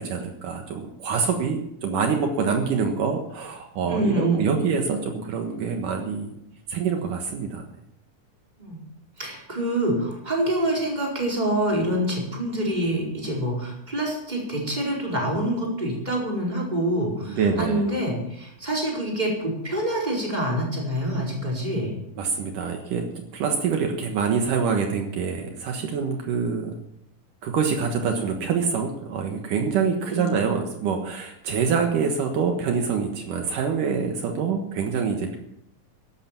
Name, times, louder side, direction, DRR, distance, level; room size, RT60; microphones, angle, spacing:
voice 1, 0.0-6.4 6.7-7.6 17.3-17.8 22.2-23.1 23.3-26.7 27.4-35.4, right 6 dB, 70° right, 3 dB, 2.9 m, -25 dB
voice 2, 3.9-4.5 8.6-8.8 9.2-21.9 23.7-23.8 30.1-30.4, right 1 dB, 10° right, -3 dB, 4.6 m, -26 dB
15.0 x 12.0 x 6.0 m, 0.79 s
omnidirectional pair, 3.9 m